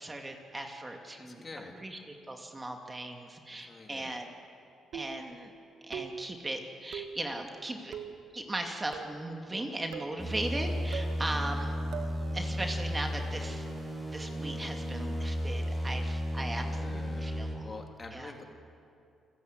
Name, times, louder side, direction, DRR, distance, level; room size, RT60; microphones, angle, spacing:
voice 1, 0.0-1.5 1.8-4.3 4.9-5.5 5.8-7.9 8.3-11.7 12.3-13.6 14.1-17.7 18.1-18.3, right 1 dB, 20° right, 3 dB, 2.4 m, -38 dB
voice 2, 1.2-1.8 3.5-4.2 15.7-15.9 16.6-17.3 17.6-18.4, left 3 dB, 35° left, 3 dB, 3.3 m, -47 dB
sound 1, 4.9-5.3 5.9-6.3 6.9-7.2 7.9-8.2 8.9-9.3 9.9-10.2 10.9-11.2 11.9-12.2, right 8 dB, 75° right, 1.9 m, -41 dB
sound 2, 10.2-17.6, equal, ahead, 7.2 m, -34 dB
28.5 x 15.0 x 9.5 m, 2.5 s
cardioid pair, 90°, 0 cm